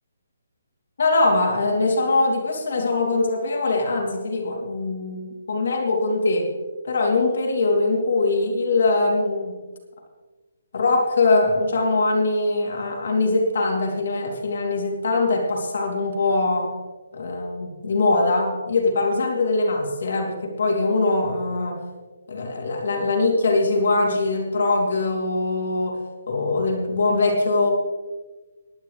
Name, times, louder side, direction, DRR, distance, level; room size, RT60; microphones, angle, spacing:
voice 1, 1.0-6.5 6.8-9.5 10.7-16.7 17.1-21.8 22.3-26.0 26.3-27.7, left 2 dB, 55° left, 1 dB, 3.2 m, -22 dB
20.0 x 11.0 x 3.4 m, 1.3 s
hypercardioid pair, 175°, 0 cm